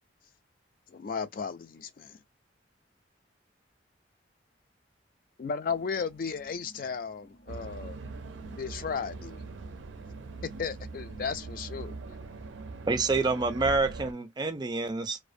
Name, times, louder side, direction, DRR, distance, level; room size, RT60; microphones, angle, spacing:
voice 1, 0.9-2.2 5.4-8.0 8.5-9.4 10.6-12.0, left 5 dB, 45° left, 0.3 m, -35 dB
voice 2, 7.5-8.6 9.6-10.5 11.9-12.1 12.4-12.5, right 1 dB, 75° left, 1.0 m, -56 dB
sound 1, 7.5-14.1, right 3 dB, 85° right, 0.4 m, -42 dB
voice 3, 12.9-15.2, right 3 dB, 25° right, 0.4 m, -27 dB
2.4 x 2.1 x 2.6 m
head